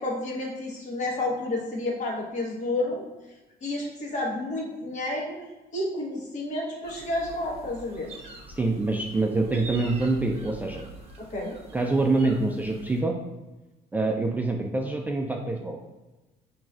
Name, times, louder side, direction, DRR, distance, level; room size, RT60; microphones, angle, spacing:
voice 1, 0.0-3.0 3.6-5.4 5.7-8.1 11.2-11.6, left 2 dB, 45° left, -2 dB, 1.2 m, -30 dB
sound 1, 6.8-13.0, right 2 dB, 35° right, 0.9 m, -45 dB
voice 2, 8.6-10.8 11.7-13.1 13.9-15.8, right 2 dB, 10° right, 1 dB, 0.3 m, -25 dB
5.8 x 3.1 x 2.3 m, 1.1 s
cardioid pair, 110°, 17 cm